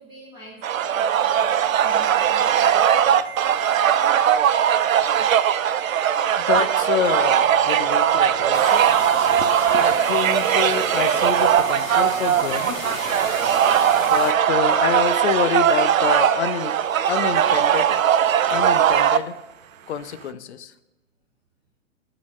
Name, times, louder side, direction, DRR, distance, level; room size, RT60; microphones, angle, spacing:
voice 1, 0.0-2.8 12.3-12.8, equal, 10° right, -8 dB, 2.1 m, -45 dB
sound 1, 0.6-19.2, right 9 dB, 75° right, 0.6 m, -19 dB
Ringtone, 2.3-2.6 3.2-3.9 4.5-4.8 5.1-5.5 5.8-6.1 6.4-6.7 7.0-13.6, right 9 dB, 45° right, 1.3 m, -39 dB
voice 2, 6.5-9.0 9.4-12.8 14.0-16.7 17.1-18.0 18.5-19.3 19.9-20.7, left 8 dB, 55° left, 13 dB, 0.6 m, -27 dB
sound 2, 8.5-14.3, left 5 dB, 75° left, 1.1 m, -36 dB
9.5 x 4.0 x 6.2 m, 1.1 s
figure-of-eight pair, 125°, 41 cm